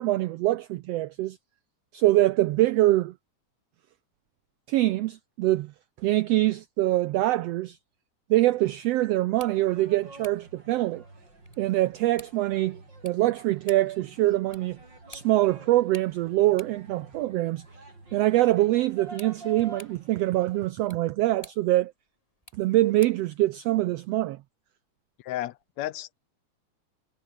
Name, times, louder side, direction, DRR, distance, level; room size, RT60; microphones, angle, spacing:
voice 1, 0.0-1.4 1.9-3.1 4.7-5.7 6.0-7.8 8.3-11.0 11.6-14.8 15.1-17.6 18.1-21.9 22.6-24.4, right 16 dB, 85° right, 1.4 m, -24 dB
sound 1, 9.2-23.3, left 1 dB, 10° left, 3.8 m, -54 dB
sound 2, 9.4-20.7, right 2 dB, 35° right, 7.9 m, -48 dB
voice 2, 25.2-26.2, left 14 dB, 75° left, 1.8 m, -33 dB
omnidirectional pair, 3.5 m